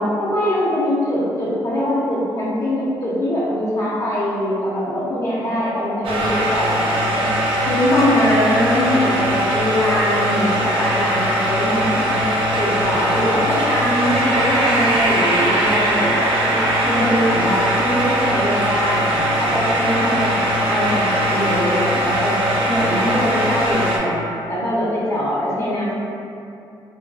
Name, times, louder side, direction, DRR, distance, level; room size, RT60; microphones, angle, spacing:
voice 1, 0.0-20.4 20.7-22.4 22.7-26.0, equal, 35° left, -7 dB, 0.6 m, -22 dB
sound 1, 6.0-24.0, right 1 dB, 85° right, 0.4 m, -20 dB
2.5 x 2.3 x 2.2 m, 2.5 s
cardioid pair, 85°, 9 cm